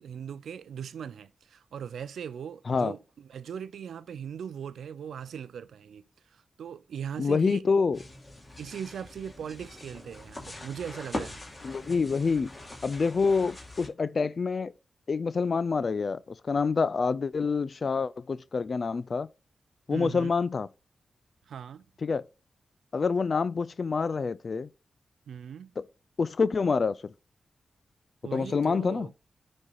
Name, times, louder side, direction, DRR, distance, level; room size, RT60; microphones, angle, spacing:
voice 1, 0.0-6.0 6.3-7.6 8.6-11.4 19.9-20.3 21.5-21.9 25.3-25.7 28.2-29.1, right 8 dB, 85° right, 0.4 m, -39 dB
voice 2, 7.2-8.0 11.6-12.5 12.8-14.7 15.1-19.3 19.9-20.7 22.0-22.2 22.9-24.7 25.8-25.9 26.2-27.1 28.3-29.1, left 5 dB, 60° left, 0.4 m, -27 dB
sound 1, 7.9-13.9, left 2 dB, 35° left, 2.5 m, -42 dB
10.5 x 4.3 x 2.4 m
supercardioid pair, 40°, 0 cm